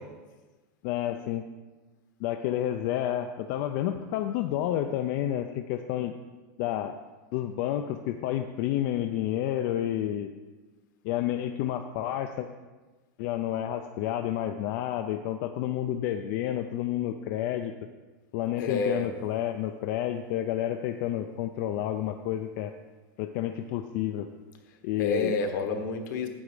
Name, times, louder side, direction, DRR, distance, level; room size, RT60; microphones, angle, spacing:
voice 1, 0.8-1.4 2.2-6.1 6.6-7.0 7.3-10.3 11.0-12.5 13.2-17.7 18.3-22.7 23.2-24.3 24.8-25.4, left 12 dB, 45° left, 6 dB, 0.4 m, -30 dB
voice 2, 18.6-19.1 25.0-26.3, left 4 dB, 70° left, 6 dB, 1.2 m, -29 dB
9.0 x 6.9 x 4.8 m, 1.3 s
supercardioid pair, 160°, 11 cm